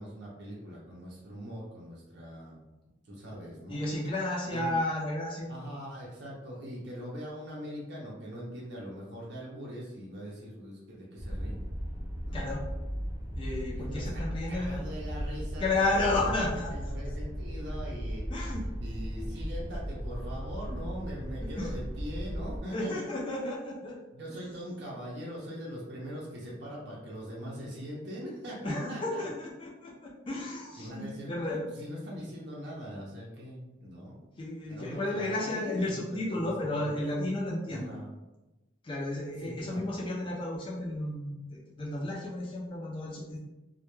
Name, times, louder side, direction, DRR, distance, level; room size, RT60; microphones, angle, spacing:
voice 1, 0.0-2.6 3.0-3.8 4.5-4.7 5.5-11.7 12.3-12.5 13.7-18.3 18.8-23.1 24.1-29.2 30.8-34.2 34.7-36.9 37.7-38.1 39.4-40.0, equal, 60° right, -4 dB, 0.6 m, -41 dB
voice 2, 3.7-5.5 12.3-12.6 13.4-14.8 15.6-16.7 18.3-18.6 21.4-21.7 22.7-24.0 28.6-31.7 34.4-37.9 38.8-43.4, left 2 dB, 25° left, -4 dB, 0.4 m, -32 dB
sound 1, 11.2-22.6, equal, 15° right, 0.7 m, -36 dB
2.2 x 2.1 x 3.0 m, 1.0 s
head